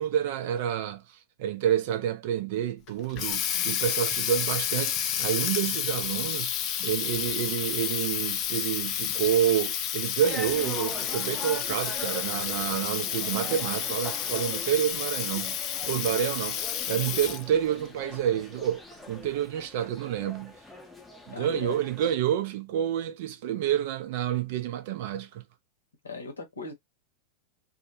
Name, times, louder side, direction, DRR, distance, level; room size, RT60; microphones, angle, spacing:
voice 1, 0.0-15.6 15.9-16.6 16.9-20.5 21.3-25.4, right 10 dB, 50° right, 0.4 m, -29 dB
Water tap faucet, 2.9-17.6, left 10 dB, 40° left, 0.3 m, -30 dB
sound 1, 10.2-22.2, left 2 dB, 5° left, 0.6 m, -43 dB
voice 2, 15.8-16.2 21.3-21.8 26.0-26.7, left 3 dB, 75° left, 0.7 m, -39 dB
2.1 x 2.1 x 2.9 m
figure-of-eight pair, 90°, 0 cm